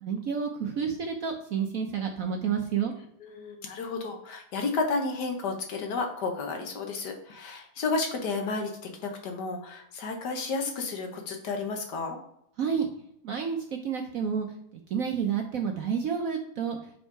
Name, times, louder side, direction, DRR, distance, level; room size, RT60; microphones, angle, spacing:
voice 1, 0.0-2.9 12.6-12.9 13.2-14.5 14.9-16.8, right 7 dB, 60° right, 3 dB, 0.9 m, -29 dB
voice 2, 3.2-8.7 9.0-12.2, left 3 dB, 65° left, 3 dB, 1.5 m, -32 dB
5.4 x 4.8 x 4.6 m, 0.75 s
omnidirectional pair, 2.0 m